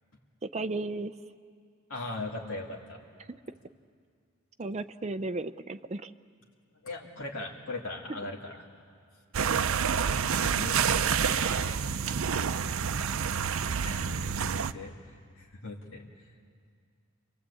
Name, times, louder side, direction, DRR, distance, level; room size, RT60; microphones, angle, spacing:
voice 1, 0.4-1.1 3.3-3.4 4.6-6.1 9.4-9.5, right 2 dB, 30° right, 9 dB, 0.6 m, -34 dB
voice 2, 1.9-3.0 6.8-8.5 10.2-10.8 11.2-11.8 13.8-14.9 15.4-16.0, left 2 dB, 75° left, -2 dB, 2.5 m, -39 dB
sound 1, 9.3-14.7, right 7 dB, 85° right, 0.6 m, -28 dB
29.0 x 22.0 x 8.5 m, 2.2 s
head